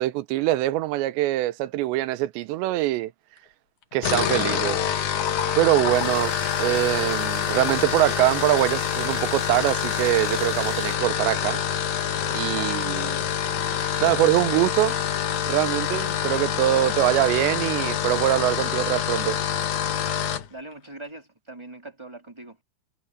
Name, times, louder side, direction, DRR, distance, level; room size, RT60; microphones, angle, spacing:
voice 1, 0.0-3.1 3.9-4.9 5.6-6.3 6.6-11.6 12.3-13.2 14.0-15.0 15.5-19.4, right 15 dB, 85° right, 3.1 m, -23 dB
sound 1, 3.9-20.5, left 9 dB, 60° left, 2.3 m, -26 dB
sound 2, 5.9-11.0, right 8 dB, 60° right, 4.3 m, -42 dB
voice 2, 20.5-22.6, right 2 dB, 5° right, 3.2 m, -41 dB
omnidirectional pair, 5.0 m